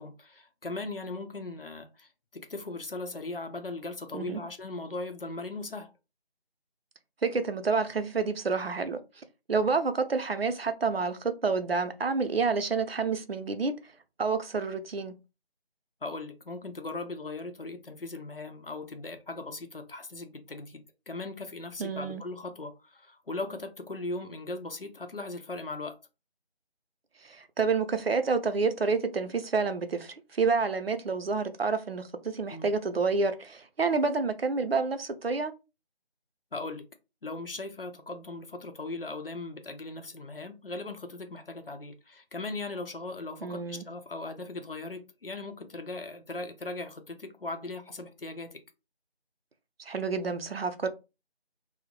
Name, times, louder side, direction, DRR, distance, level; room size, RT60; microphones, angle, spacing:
voice 1, 0.0-5.9 16.0-26.0 32.5-32.7 36.5-36.9 37.2-48.6, left 2 dB, 60° left, 0.6 m, -38 dB
voice 2, 7.2-13.7 14.2-15.2 21.8-22.2 27.2-35.5 43.4-43.8 49.8-50.9, right 4 dB, 65° right, 0.5 m, -29 dB
2.6 x 2.1 x 2.9 m
figure-of-eight pair, 180°, 32 cm